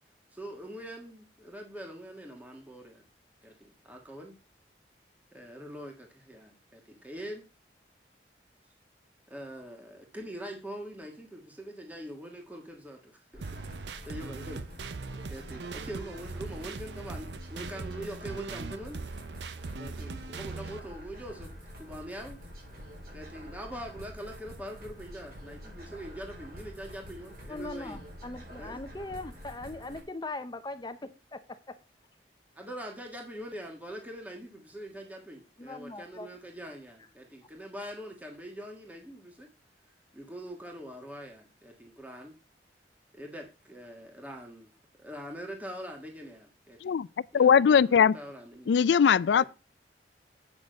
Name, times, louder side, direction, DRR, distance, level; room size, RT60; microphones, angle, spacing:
voice 1, 0.3-3.1 3.4-4.3 5.3-7.4 9.3-13.4 13.8-14.7 14.9-19.0 19.8-21.5 21.8-22.4 23.1-28.0 28.6-28.8 32.5-39.5 40.1-42.3 43.1-44.7 45.0-47.0 47.3-48.8 49.4-49.5, equal, 10° right, 1.6 m, -43 dB
sound 1, 13.3-30.0, equal, 55° right, 4.5 m, -47 dB
sound 2, 13.4-20.8, right 4 dB, 80° right, 0.6 m, -40 dB
voice 2, 27.5-31.8 35.6-36.3, left 2 dB, 25° left, 0.7 m, -40 dB
voice 3, 47.3-48.2 48.7-49.4, left 7 dB, 80° left, 0.4 m, -20 dB
8.5 x 6.3 x 5.1 m
head